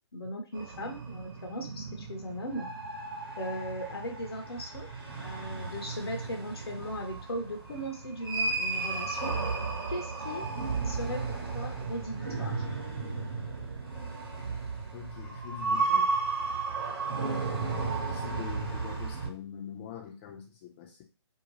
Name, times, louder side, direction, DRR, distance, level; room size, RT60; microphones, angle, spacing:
voice 1, 0.1-2.7 3.4-4.9 5.2-9.3 9.9-10.5 10.8-11.2 11.5-12.7 14.5-14.6, equal, 60° left, 0.8 m, -38 dB
sound 1, 0.6-19.3, right 4 dB, 50° right, 1.1 m, -34 dB
voice 2, 14.9-16.2 18.1-21.0, left 9 dB, 25° left, 0.6 m, -43 dB
2.7 x 2.3 x 3.0 m
figure-of-eight pair, 135°, 15 cm